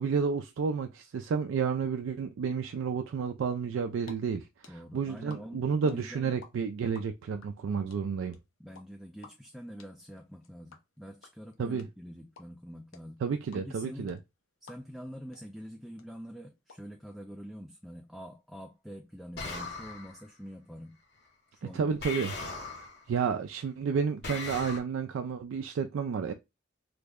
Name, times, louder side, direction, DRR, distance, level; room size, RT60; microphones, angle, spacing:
voice 1, 0.0-8.4 11.6-11.9 13.2-14.2 21.6-22.3 23.1-26.3, right 6 dB, 80° right, 0.3 m, -31 dB
sound 1, 3.9-4.1 4.4-6.5 6.7-15.1 15.3-15.4 15.7-16.7, left 4 dB, 90° left, 0.7 m, -53 dB
voice 2, 4.7-6.4 8.6-13.2 13.5-14.2 14.6-21.0 21.5-21.9 22.2-22.5, equal, ahead, 0.3 m, -45 dB
sound 2, 19.4-20.2 22.0-23.1 24.2-24.8, left 3 dB, 55° left, 0.8 m, -38 dB
3.3 x 2.1 x 3.5 m
head